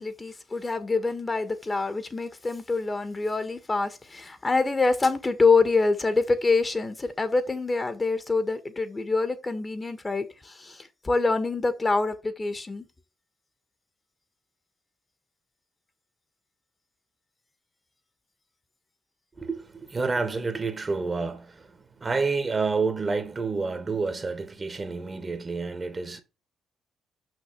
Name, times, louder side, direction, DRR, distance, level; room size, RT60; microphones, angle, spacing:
voice 1, 0.0-12.9, left 3 dB, 30° left, 1.6 m, -26 dB
voice 2, 19.4-26.2, right 4 dB, 35° right, 1.7 m, -29 dB
6.5 x 5.9 x 6.8 m
supercardioid pair, 60°, 0 cm